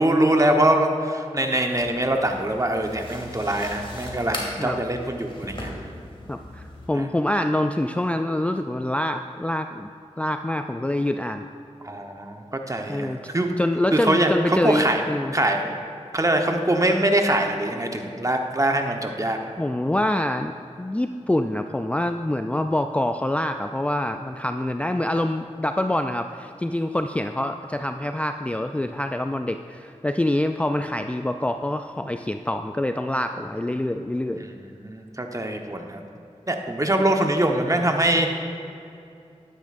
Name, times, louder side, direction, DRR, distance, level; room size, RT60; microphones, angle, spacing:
voice 1, 0.0-5.7 6.9-7.1 11.8-13.5 13.9-15.8 16.1-19.4 34.4-36.0 36.5-38.3, right 1 dB, 25° right, 3 dB, 1.0 m, -23 dB
sound 1, 1.7-6.9, left 1 dB, 45° left, 2.3 m, -38 dB
voice 2, 6.3-9.9 10.2-11.5 12.9-13.2 13.6-15.3 19.6-34.4, left 1 dB, 10° left, 6 dB, 0.3 m, -25 dB
12.0 x 10.0 x 2.5 m, 2.5 s
cardioid pair, 40°, 12 cm